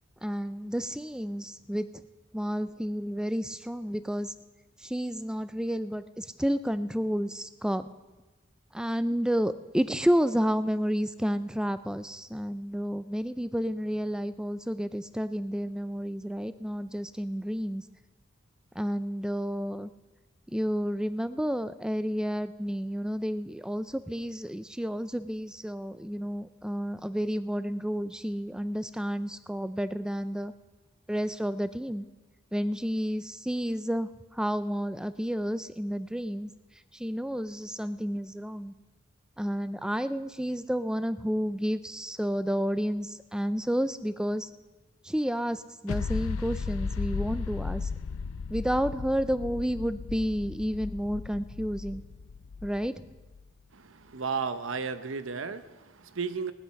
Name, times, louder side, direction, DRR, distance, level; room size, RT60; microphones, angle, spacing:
voice 1, 0.2-2.0 2.3-4.3 4.8-7.9 8.7-17.8 18.7-19.9 20.5-30.5 31.1-32.0 32.5-36.5 36.9-38.7 39.4-44.5 45.0-47.9 48.5-52.0 52.6-53.0, equal, 5° right, 13 dB, 0.4 m, -31 dB
sound 1, 45.9-53.4, left 5 dB, 80° left, 0.4 m, -35 dB
voice 2, 53.7-56.5, right 5 dB, 75° right, 12 dB, 0.8 m, -34 dB
17.5 x 11.5 x 5.8 m, 1.2 s
head